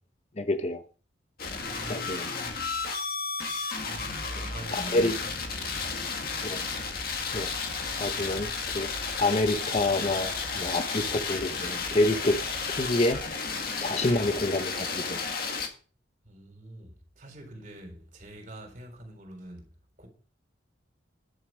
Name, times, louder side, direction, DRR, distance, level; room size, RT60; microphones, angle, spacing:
voice 1, 0.4-0.8 1.9-2.3 4.9-5.1 6.4-6.6 7.3-7.5 8.0-8.9 9.2-12.4 12.7-13.2 13.8-15.2, left 2 dB, 35° left, 0.7 m, -27 dB
sound 1, 1.4-15.7, left 4 dB, 50° left, 1.9 m, -33 dB
voice 2, 1.5-2.7 3.8-6.2 16.2-19.7 20.0-20.1, right 1 dB, 40° right, 3.9 m, -45 dB
11.0 x 7.1 x 6.1 m
head